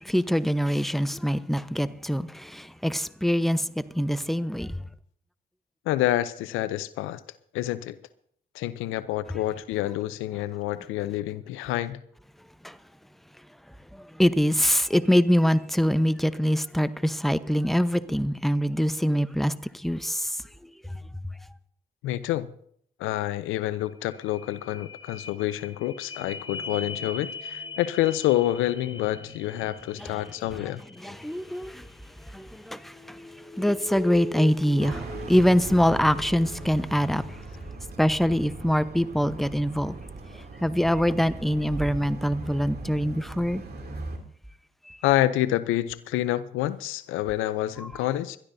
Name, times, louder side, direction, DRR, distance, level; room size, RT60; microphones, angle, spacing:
voice 1, 0.0-4.8 12.6-12.8 13.9-20.4 30.0-30.2 31.0-31.8 32.3-33.2 33.6-37.2 38.0-39.9 40.6-43.6 44.9-45.0 47.8-47.9, equal, ahead, 0.9 m, -24 dB
voice 2, 5.9-7.2 7.5-8.0 8.5-12.0 22.0-22.5 23.0-30.8 45.0-48.4, left 14 dB, 85° left, 0.6 m, -27 dB
sound 1, 23.8-39.7 40.2-40.3, left 4 dB, 25° left, 1.1 m, -42 dB
sound 2, 34.8-44.2, right 3 dB, 50° right, 2.8 m, -39 dB
22.0 x 13.0 x 2.7 m
supercardioid pair, 45°, 20 cm